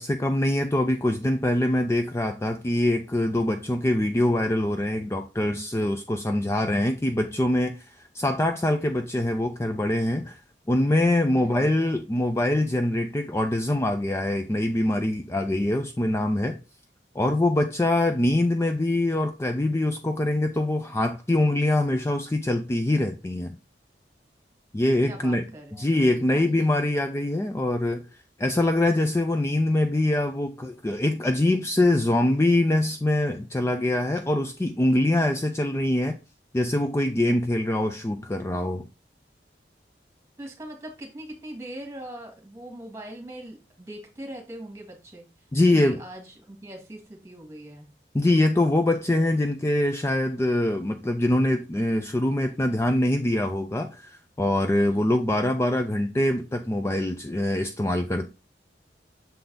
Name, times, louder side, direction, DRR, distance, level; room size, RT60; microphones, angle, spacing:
voice 1, 0.0-10.4 10.7-16.6 17.2-23.6 24.7-25.4 25.7-28.0 28.4-36.2 36.5-38.9 45.5-46.0 48.1-58.3, left 1 dB, 15° left, 0.4 m, -24 dB
voice 2, 25.1-26.7 40.4-45.3 45.7-47.9 54.8-55.2, right 1 dB, 15° right, 1.8 m, -41 dB
6.9 x 3.9 x 3.9 m
head